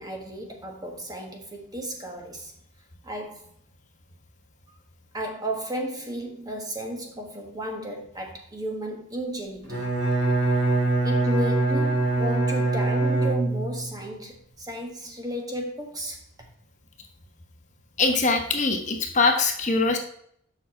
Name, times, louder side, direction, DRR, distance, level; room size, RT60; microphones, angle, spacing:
voice 1, 0.0-2.5 3.0-3.5 5.1-9.9 11.0-16.5, right 1 dB, 20° right, 2 dB, 1.3 m, -34 dB
Bowed string instrument, 9.6-13.9, right 2 dB, 80° right, 3.6 m, -23 dB
voice 2, 18.0-20.0, left 3 dB, 40° left, 4 dB, 1.0 m, -22 dB
7.3 x 5.8 x 4.2 m, 0.66 s
head